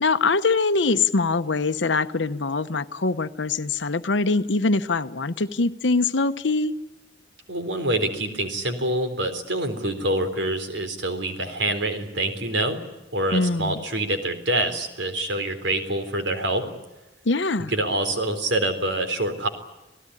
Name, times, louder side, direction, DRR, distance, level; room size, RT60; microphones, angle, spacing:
voice 1, 0.0-6.7 13.3-13.8 17.2-17.7, left 3 dB, 80° left, 10 dB, 0.9 m, -23 dB
voice 2, 7.5-12.8 13.1-16.7 17.7-19.5, right 1 dB, 80° right, 8 dB, 3.8 m, -26 dB
27.5 x 18.0 x 9.9 m, 1.1 s
head